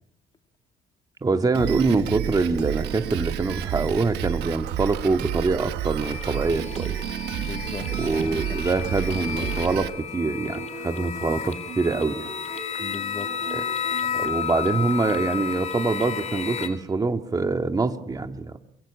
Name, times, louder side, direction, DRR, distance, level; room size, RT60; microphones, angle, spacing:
voice 1, 1.2-7.0 8.0-12.3 13.5-13.6 14.1-18.6, right 3 dB, 20° right, 6 dB, 2.3 m, -25 dB
Drum kit, 1.5-9.9, right 12 dB, 80° right, 1.4 m, -31 dB
sound 1, 2.4-14.9, right 8 dB, 40° right, 2.4 m, -43 dB
sound 2, 6.0-16.7, left 8 dB, 45° left, 3.6 m, -32 dB
voice 2, 7.3-8.8 9.4-9.7 12.8-13.5, left 4 dB, 25° left, 5 dB, 2.2 m, -38 dB
29.0 x 22.5 x 8.7 m, 0.81 s
cardioid pair, 110°, 17 cm